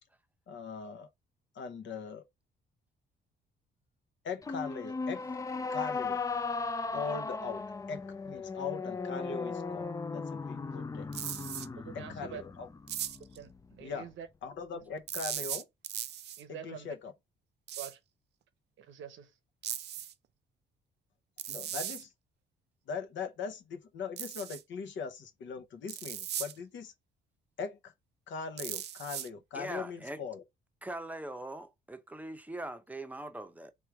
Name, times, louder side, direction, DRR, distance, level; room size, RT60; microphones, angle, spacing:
voice 1, 0.5-1.1 1.5-2.2 4.2-5.2 5.7-6.2 6.9-11.1 11.9-12.7 13.8-14.1 14.4-15.7 16.6-17.1 21.5-22.1 22.9-26.9 27.6-27.9 28.3-30.4, left 5 dB, 70° left, 1.0 m, -40 dB
sound 1, 4.4-13.8, left 4 dB, 15° left, 0.4 m, -37 dB
sound 2, 11.1-11.7 12.9-13.4 15.1-16.4 17.7-17.9 19.6-20.1 21.4-22.0 24.2-24.6 25.9-26.5 28.6-29.3, right 11 dB, 60° right, 0.4 m, -38 dB
voice 2, 11.8-12.4 13.3-14.3 14.7-14.8 16.4-16.9 17.8-18.0 18.8-19.4, right 9 dB, 75° right, 0.8 m, -46 dB
voice 3, 29.5-30.2 30.8-33.7, right 1 dB, 10° right, 0.7 m, -41 dB
3.6 x 3.2 x 4.6 m
cardioid pair, 90°, 20 cm